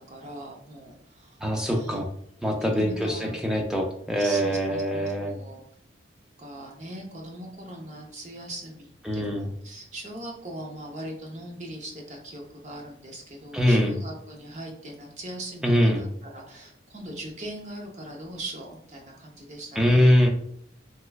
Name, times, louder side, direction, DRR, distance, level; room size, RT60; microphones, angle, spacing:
voice 1, 0.0-1.4 1.7-2.1 2.6-3.3 4.2-5.6 6.4-20.1, right 1 dB, 40° right, 0 dB, 0.7 m, -40 dB
voice 2, 1.4-2.1 2.4-5.3 9.0-9.5 13.5-13.9 15.6-16.0 19.8-20.3, equal, 5° right, 1 dB, 0.4 m, -23 dB
3.3 x 3.0 x 2.3 m, 0.70 s
head